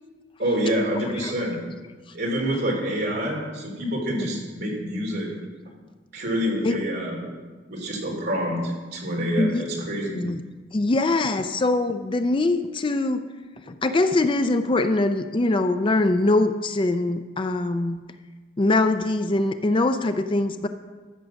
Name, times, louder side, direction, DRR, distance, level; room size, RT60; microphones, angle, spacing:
voice 1, 0.4-1.6 2.1-5.3 6.1-7.3 7.7-10.2, equal, 55° right, -2 dB, 3.3 m, -27 dB
voice 2, 10.7-13.2 13.7-18.0 18.6-20.7, left 2 dB, 25° left, 9 dB, 0.4 m, -22 dB
13.5 x 6.6 x 6.3 m, 1.4 s
head